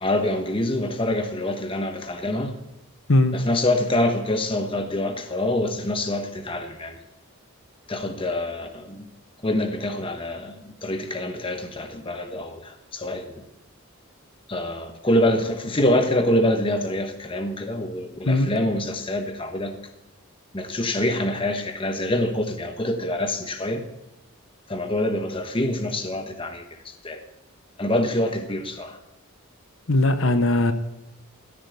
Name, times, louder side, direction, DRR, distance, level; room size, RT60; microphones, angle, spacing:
voice 1, 0.0-2.6 3.3-7.0 7.9-9.1 9.4-13.4 14.5-19.7 20.5-23.8 24.7-27.2 27.8-29.0, left 1 dB, 25° left, 1.1 m, -25 dB
voice 2, 29.9-30.7, left 2 dB, 60° left, 1.0 m, -19 dB
15.0 x 7.5 x 8.2 m
head